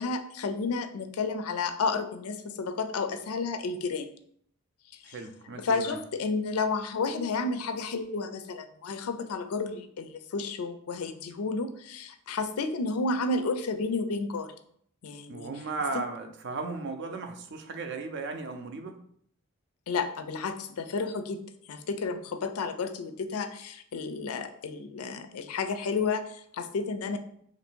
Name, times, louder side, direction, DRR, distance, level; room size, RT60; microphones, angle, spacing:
voice 1, 0.0-4.1 5.0-5.1 5.6-14.5 15.0-15.5 15.9-16.0 19.9-21.4 21.7-27.2, left 4 dB, 85° left, 9 dB, 0.4 m, -31 dB
voice 2, 5.0-6.0 15.3-19.0, right 3 dB, 55° right, 6 dB, 0.5 m, -36 dB
3.0 x 2.6 x 4.3 m, 0.65 s
head